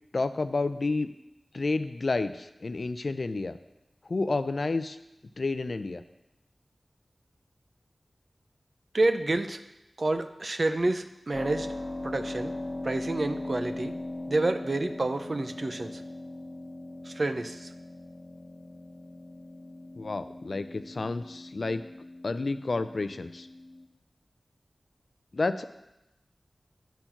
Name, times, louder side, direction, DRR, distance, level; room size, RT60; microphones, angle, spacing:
voice 1, 0.1-1.1 1.5-3.6 4.0-5.0 5.4-6.0 20.0-21.8 22.2-23.5 25.3-25.6, left 3 dB, 65° left, 12 dB, 0.4 m, -30 dB
voice 2, 8.9-9.6 10.0-11.7 12.0-12.5 12.8-13.9 14.3-16.0 17.1-17.7, right 2 dB, 55° right, 9 dB, 0.6 m, -28 dB
Keyboard (musical), 11.3-23.8, left 2 dB, 20° left, 1.1 m, -40 dB
10.5 x 4.5 x 5.8 m, 0.92 s
wide cardioid pair, 60°, 0 cm